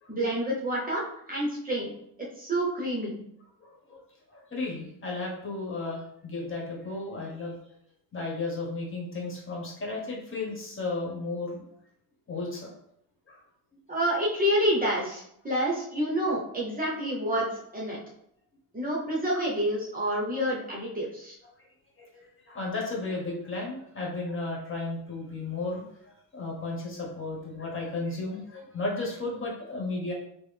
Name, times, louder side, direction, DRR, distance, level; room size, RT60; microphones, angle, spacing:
voice 1, 0.1-1.0 1.3-1.9 2.4-3.2 13.9-18.0 18.7-21.4, equal, 20° right, -3 dB, 0.9 m, -28 dB
voice 2, 3.6-4.0 4.3-7.6 8.1-11.7 12.3-12.7 13.3-13.4 13.7-13.8 22.0-25.8 26.3-30.1, left 3 dB, 30° left, -3 dB, 1.3 m, -34 dB
3.8 x 2.1 x 3.4 m, 0.72 s
cardioid pair, 110°, 39 cm